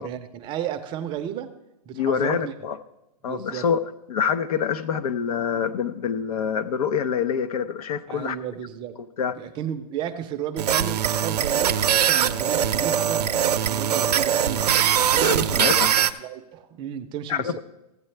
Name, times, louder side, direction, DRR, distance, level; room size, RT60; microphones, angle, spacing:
voice 1, 0.0-1.5 1.9-2.5 3.3-3.7 8.1-9.0 9.4-14.6 15.0-15.9 16.2-17.6, right 9 dB, 25° right, 8 dB, 0.5 m, -33 dB
voice 2, 1.9-2.8 3.2-3.8 4.1-8.4 9.2-9.3 15.2-15.9 17.3-17.6, left 7 dB, 65° left, 12 dB, 0.7 m, -26 dB
sound 1, 10.6-16.1, right 9 dB, 85° right, 0.6 m, -21 dB
15.0 x 8.2 x 3.3 m, 0.94 s
hypercardioid pair, 140°, 20 cm